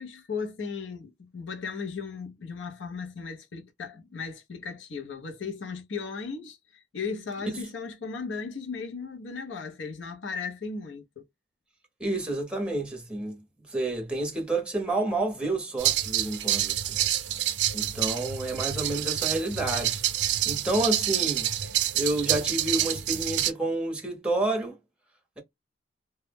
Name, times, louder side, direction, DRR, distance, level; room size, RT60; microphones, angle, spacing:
voice 1, 0.0-11.2, left 5 dB, 85° left, 0.6 m, -36 dB
voice 2, 12.0-13.4 13.7-16.9 17.7-21.5 21.9-24.8, right 2 dB, 5° right, 0.6 m, -29 dB
sound 1, 15.8-23.5, right 12 dB, 70° right, 0.4 m, -27 dB
2.2 x 2.0 x 3.2 m
head